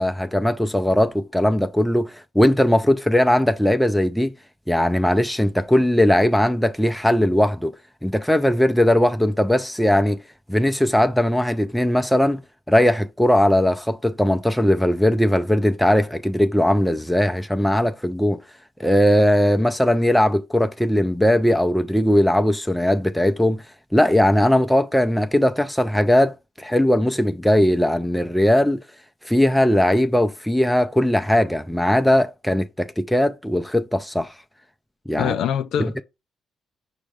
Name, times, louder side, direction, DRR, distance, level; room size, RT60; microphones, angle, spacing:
voice 1, 0.0-4.3 4.7-7.7 8.0-10.2 10.5-12.4 12.7-18.4 18.8-23.6 23.9-28.8 29.2-34.3 35.1-35.3 35.8-36.0, left 1 dB, 5° left, 0.4 m, -19 dB
voice 2, 35.1-36.0, left 9 dB, 80° left, 0.3 m, -24 dB
5.3 x 2.1 x 4.8 m
cardioid pair, 90°, 0 cm